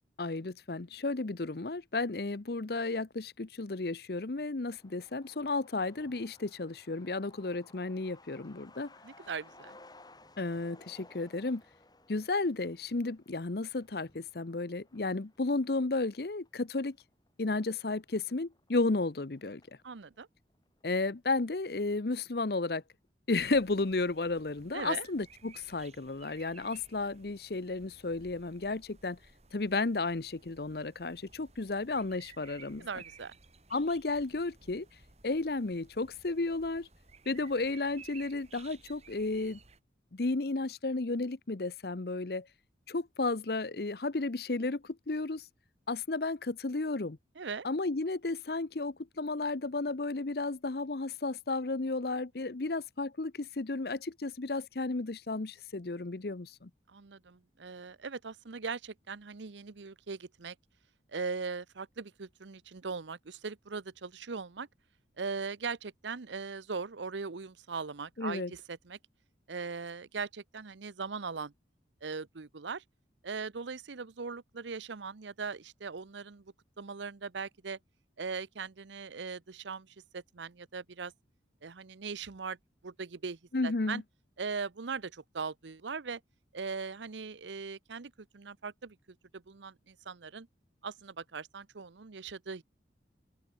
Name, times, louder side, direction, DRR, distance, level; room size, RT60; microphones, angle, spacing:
voice 1, 0.2-8.9 10.4-11.6 12.1-17.0 17.4-19.6 20.8-22.8 23.3-29.2 29.5-32.9 33.7-34.9 35.2-36.9 37.3-39.6 40.1-42.5 42.9-45.4 45.9-47.2 47.6-56.7 68.2-68.5 83.5-84.0, left 3 dB, 55° left, 0.8 m, -33 dB
Truck, 4.6-19.8 20.1-20.2 20.5-21.4 21.7-21.8 22.1-22.5, left 2 dB, 20° left, 4.9 m, -60 dB
voice 2, 9.0-9.8 19.8-20.3 24.7-25.1 32.8-33.3 47.4-47.7 56.9-60.6 61.1-64.7 65.2-69.0 69.5-71.5 72.0-72.8 73.2-77.8 78.2-81.1 81.6-82.6 82.8-84.0 84.4-86.2 86.5-89.0 89.3-90.5 90.8-92.6, right 5 dB, 80° right, 0.8 m, -40 dB
sound 1, 23.4-39.8, right 5 dB, 35° right, 4.0 m, -57 dB
open air
head